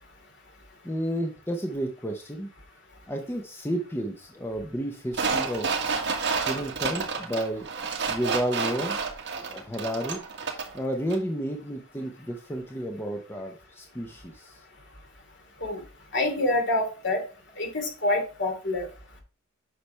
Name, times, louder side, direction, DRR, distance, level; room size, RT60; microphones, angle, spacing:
voice 1, 0.8-2.5 3.1-5.7 6.4-7.7 8.1-9.0 9.4-14.6, equal, 10° left, 3 dB, 0.8 m, -32 dB
sound 1, 5.1-10.8 11.1-11.2, right 5 dB, 55° right, 1.7 m, -30 dB
voice 2, 16.1-17.2 17.6-18.9, left 2 dB, 55° left, 3 dB, 2.7 m, -26 dB
8.3 x 5.9 x 3.3 m, 0.36 s
head